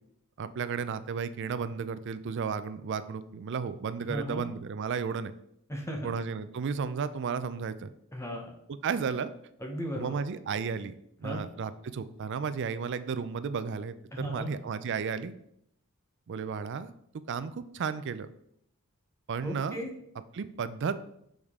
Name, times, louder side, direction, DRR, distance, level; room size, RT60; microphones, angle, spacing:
voice 1, 0.4-5.3 6.0-7.9 8.8-9.3 9.9-10.9 11.2-15.3 16.3-16.9 17.3-18.3 19.3-19.8 20.3-21.0, right 6 dB, 55° right, 13 dB, 0.4 m, -33 dB
voice 2, 4.0-4.5 5.7-6.1 8.1-8.6 9.6-10.2 11.2-11.4 14.1-14.5 19.4-19.9, equal, 15° left, 2 dB, 0.9 m, -36 dB
6.4 x 5.3 x 3.6 m, 0.73 s
head